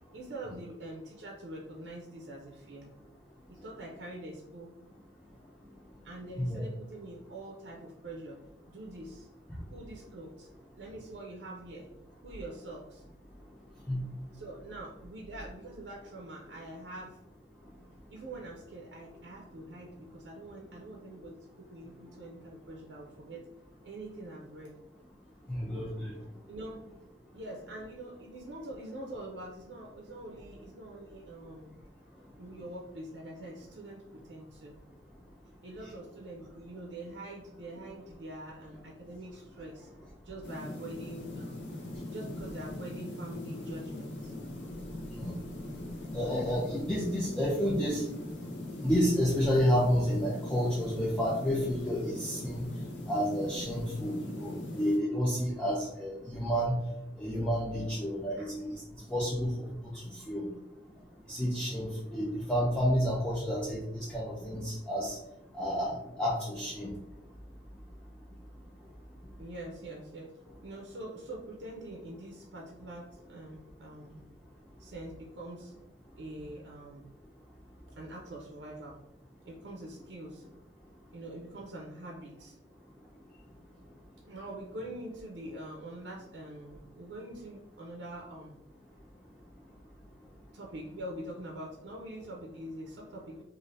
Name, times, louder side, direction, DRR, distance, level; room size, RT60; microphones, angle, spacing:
voice 1, 0.0-2.9 3.5-4.7 5.3-5.4 6.0-8.4 8.7-9.3 9.7-10.5 10.8-11.9 12.2-13.0 14.3-17.2 18.1-23.5 23.8-24.8 26.5-26.9 27.3-31.7 32.4-34.8 35.6-39.9 40.2-41.7 42.1-44.3 58.4-58.5 59.9-60.0 69.4-70.3 70.6-74.2 74.8-75.7 76.2-77.1 78.0-79.0 79.4-80.4 81.1-82.6 83.7-83.9 84.2-88.6 88.9-89.0 90.5-93.4, right 1 dB, 85° right, -1 dB, 0.5 m, -44 dB
voice 2, 25.5-26.1 45.2-45.3 46.1-48.1 48.8-52.6 53.1-56.7 57.2-58.8 59.1-59.5 60.1-60.5 61.3-65.2 65.5-66.9, equal, 5° left, -7 dB, 0.4 m, -30 dB
sound 1, 40.4-55.0, left 1 dB, 80° left, 0.6 m, -41 dB
3.2 x 2.5 x 2.5 m, 0.87 s
head